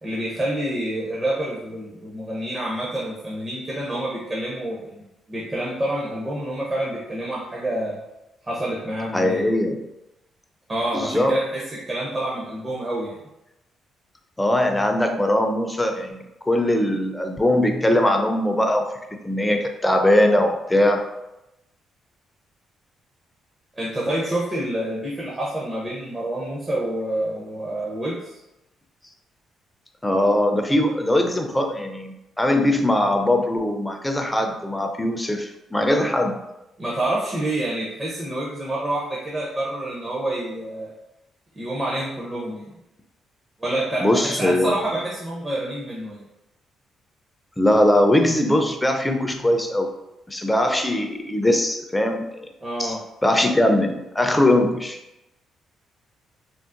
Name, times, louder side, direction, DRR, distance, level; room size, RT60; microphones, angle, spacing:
voice 1, 0.0-8.0 8.5-9.4 10.7-13.2 23.8-28.4 36.8-40.9 41.5-42.7 43.6-46.2 52.6-53.0, right 1 dB, 30° right, -6 dB, 0.7 m, -28 dB
voice 2, 9.1-9.8 10.9-11.4 14.4-18.9 19.2-21.0 30.0-36.4 44.0-44.9 47.6-49.9 50.3-52.5 52.8-53.0 53.2-55.0, left 1 dB, 10° left, 4 dB, 0.4 m, -21 dB
3.8 x 2.0 x 2.5 m, 0.92 s
cardioid pair, 90°, 0 cm